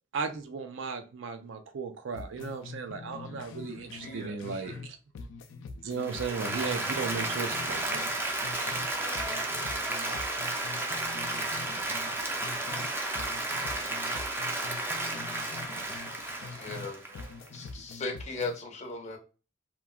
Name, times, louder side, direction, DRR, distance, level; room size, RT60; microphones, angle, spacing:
voice 1, 0.1-4.7 5.8-8.0, right 5 dB, 90° right, 8 dB, 0.4 m, -36 dB
sound 1, 2.1-4.9 5.1-8.9 9.1-12.9 13.1-16.9 17.1-18.6, left 4 dB, 85° left, 0.3 m, -44 dB
voice 2, 4.0-4.9 8.9-9.4 9.7-10.8 12.9-15.9 16.3-17.6, right 1 dB, 55° right, -3 dB, 1.4 m, -52 dB
Applause, 6.0-17.7, right 2 dB, 10° right, 0.4 m, -33 dB
voice 3, 16.6-17.0 17.5-19.2, left 3 dB, 40° left, 3 dB, 0.6 m, -36 dB
3.0 x 2.3 x 2.2 m, 0.34 s
head